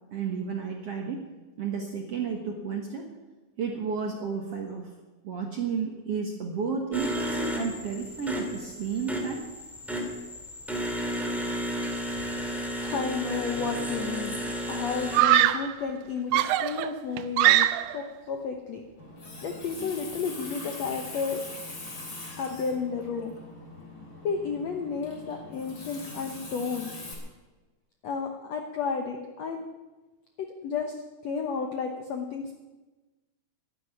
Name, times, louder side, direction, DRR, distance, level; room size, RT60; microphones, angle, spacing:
voice 1, 0.1-1.2 1.6-3.0 3.6-4.9 5.2-9.4 15.2-15.3, right 5 dB, 60° right, 1 dB, 1.7 m, -32 dB
sound 1, 6.9-15.2, equal, ahead, 1.4 m, -33 dB
voice 2, 12.6-14.4 14.7-17.7 17.9-18.8 19.4-21.4 22.4-23.4 24.2-26.9 28.0-29.6 30.4-30.9 31.2-32.6, left 5 dB, 75° left, 4 dB, 1.6 m, -32 dB
Screaming, 13.6-14.1 15.1-15.8 16.3-18.1, right 14 dB, 85° right, 2.7 m, -22 dB
Water tap faucet, 19.0-27.1, left 2 dB, 30° left, 3.4 m, -42 dB
11.5 x 11.0 x 9.7 m, 1.2 s
omnidirectional pair, 4.5 m